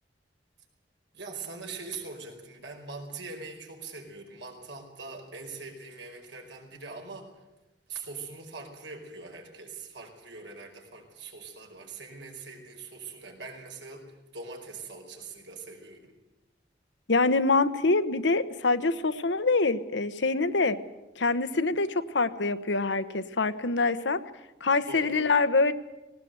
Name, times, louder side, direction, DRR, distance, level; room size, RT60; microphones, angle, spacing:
voice 1, 1.1-7.3 7.9-16.1 24.9-25.3, right 4 dB, 90° right, 2 dB, 4.9 m, -42 dB
voice 2, 17.1-20.8 21.2-24.2 24.6-25.7, left 3 dB, 90° left, 12 dB, 1.0 m, -25 dB
18.5 x 18.0 x 8.1 m, 1.0 s
head